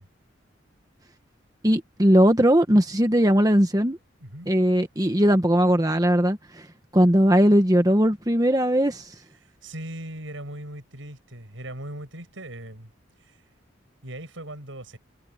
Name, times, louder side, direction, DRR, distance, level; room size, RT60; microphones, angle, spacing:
voice 1, 1.6-4.0 4.5-6.7 6.9-9.1, equal, 20° right, 1.3 m, -19 dB
voice 2, 4.2-4.5 9.6-12.9 13.2-13.4 14.0-15.0, right 1 dB, 90° right, 6.2 m, -39 dB
head